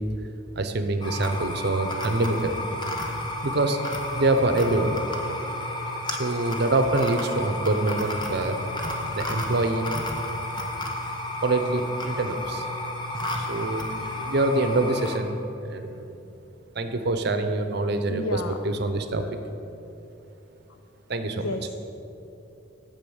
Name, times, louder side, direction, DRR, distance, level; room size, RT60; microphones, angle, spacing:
voice 1, 0.6-2.6 3.4-3.8 4.1-5.0 6.1-8.6 9.1-9.9 11.4-12.7 13.3-15.4 15.6-16.1 16.7-18.2 18.8-19.2 21.1-21.4, right 2 dB, 55° right, 8 dB, 0.8 m, -25 dB
sound 1, 1.0-15.2, left 1 dB, 20° left, 1.0 m, -32 dB
voice 2, 18.1-18.8 19.2-19.3 20.7-20.8 21.2-21.7, left 2 dB, 90° left, 6 dB, 0.6 m, -33 dB
8.8 x 7.0 x 8.0 m, 2.9 s
head